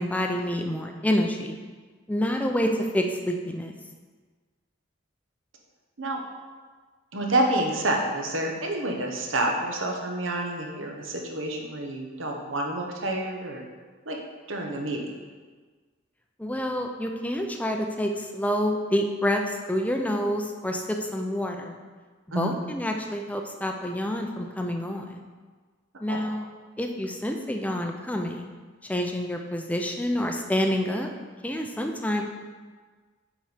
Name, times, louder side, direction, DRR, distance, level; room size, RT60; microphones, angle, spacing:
voice 1, 0.0-1.6 2.1-3.7 16.4-21.8 22.4-25.2 26.0-26.4 26.8-28.5 28.9-31.1 31.4-32.2, equal, 5° left, 3 dB, 0.5 m, -28 dB
voice 2, 7.1-13.6 14.0-14.2 14.5-15.1 22.3-22.6 26.1-26.2, right 1 dB, 75° right, 1 dB, 1.1 m, -28 dB
7.5 x 4.2 x 5.0 m, 1.4 s
head